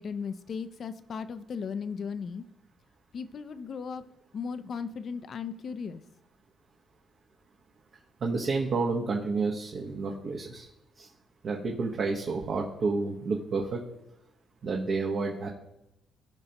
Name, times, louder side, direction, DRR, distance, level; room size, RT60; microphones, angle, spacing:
voice 1, 0.0-2.4 3.1-4.0 4.3-6.0, left 6 dB, 55° left, 12 dB, 0.6 m, -36 dB
voice 2, 8.2-10.7 11.0-11.1 11.4-13.8 14.6-15.5, right 4 dB, 55° right, -1 dB, 1.3 m, -30 dB
15.5 x 5.3 x 3.0 m, 0.83 s
cardioid pair, 90°, 0 cm